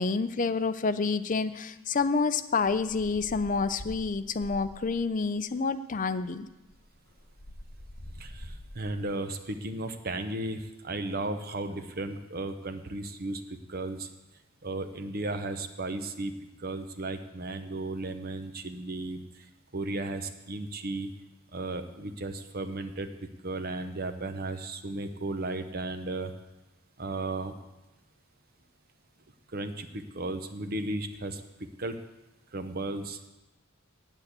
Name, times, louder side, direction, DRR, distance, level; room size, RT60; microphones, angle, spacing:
voice 1, 0.0-6.5, left 4 dB, 40° left, 12 dB, 0.5 m, -28 dB
sound 1, 2.6-5.1 6.1-6.2 6.5-9.1, left 1 dB, 15° left, 1.9 m, -46 dB
voice 2, 8.2-14.1 14.6-16.3 16.6-19.5 19.7-21.1 21.5-23.1 23.4-26.3 27.0-27.6 29.5-32.0 32.5-33.2, right 2 dB, 45° right, 9 dB, 0.9 m, -35 dB
9.1 x 8.3 x 8.3 m, 1.0 s
head